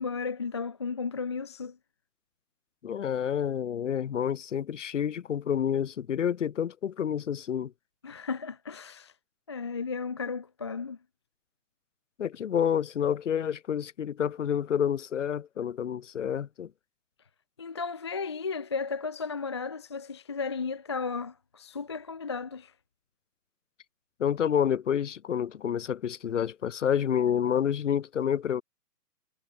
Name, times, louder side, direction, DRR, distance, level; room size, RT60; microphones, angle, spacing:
voice 1, 0.0-1.8 8.0-9.1 9.5-11.0 17.6-22.7, left 5 dB, 15° left, 0.7 m, -34 dB
voice 2, 2.8-7.7 12.2-16.7 24.2-28.6, left 8 dB, 45° left, 2.8 m, -29 dB
hypercardioid pair, 170°, 49 cm